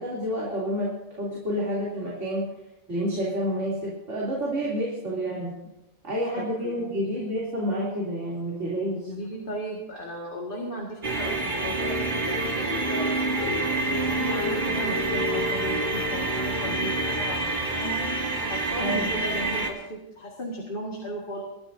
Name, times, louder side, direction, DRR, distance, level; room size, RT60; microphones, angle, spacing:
voice 1, 0.0-2.5 2.9-5.6 6.0-9.1 18.8-19.1, equal, 70° right, -6 dB, 3.4 m, -29 dB
voice 2, 6.4-7.2 9.0-13.8 14.1-18.1 18.5-21.4, equal, 45° left, -1 dB, 2.0 m, -36 dB
sound 1, 11.0-19.7, right 2 dB, 40° right, 1.8 m, -27 dB
22.5 x 13.0 x 2.7 m, 0.90 s
omnidirectional pair, 1.3 m